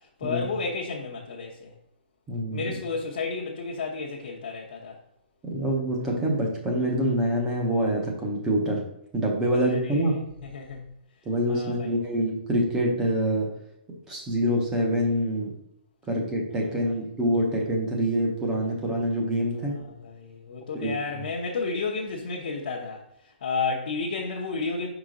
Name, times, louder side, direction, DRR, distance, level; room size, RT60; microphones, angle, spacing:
voice 1, 0.2-1.7 2.5-5.0 9.5-10.9 11.5-11.9 16.6-17.0 19.6-24.9, left 4 dB, 50° left, -4 dB, 0.9 m, -32 dB
voice 2, 2.3-2.8 5.4-8.8 9.1-10.2 11.2-13.5 14.1-15.5 16.1-19.8 20.8-21.0, equal, 10° right, -1 dB, 0.8 m, -26 dB
5.1 x 4.9 x 3.8 m, 0.80 s
hypercardioid pair, 180°, 6 cm